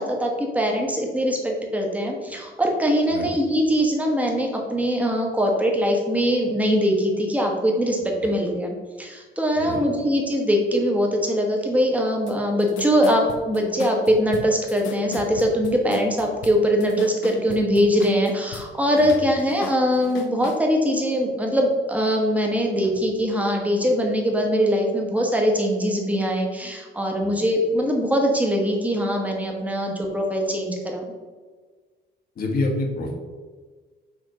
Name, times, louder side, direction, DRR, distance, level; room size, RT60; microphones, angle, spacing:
voice 1, 0.0-31.0, equal, 5° right, 1 dB, 1.2 m, -22 dB
sound 1, 12.3-12.4 12.6-18.7 18.9-20.6, left 6 dB, 80° left, 0.7 m, -36 dB
voice 2, 32.4-33.2, left 2 dB, 50° left, 1 dB, 1.4 m, -27 dB
6.1 x 3.5 x 5.5 m, 1.4 s
cardioid pair, 140°, 19 cm